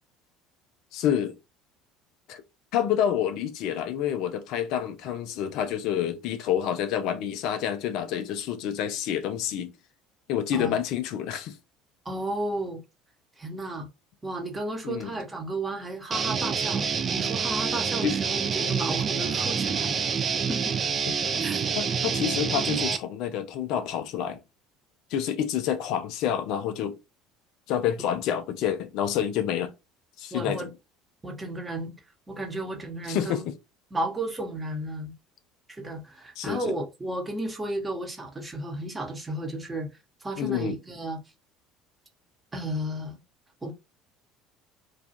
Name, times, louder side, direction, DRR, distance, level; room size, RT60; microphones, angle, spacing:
voice 1, 0.9-1.4 2.3-2.4 2.7-9.7 10.3-11.6 14.8-15.1 18.0-18.1 21.1-21.3 21.8-24.4 25.1-27.0 27.7-29.7 30.2-30.7 33.1-33.5 36.4-36.7 40.4-40.8, left 9 dB, 55° left, 0.4 m, -28 dB
voice 2, 12.0-12.8 13.4-13.9 14.2-20.0 20.5-20.8 21.4-21.6 30.3-30.7 31.2-31.9 32.3-33.4 33.9-35.1 35.7-39.9 40.2-41.2 42.5-43.2 43.6-43.7, right 1 dB, 20° right, 0.9 m, -33 dB
Guitar, 16.1-23.0, right 6 dB, 35° right, 0.4 m, -27 dB
2.4 x 2.3 x 2.8 m
figure-of-eight pair, 60°, 0 cm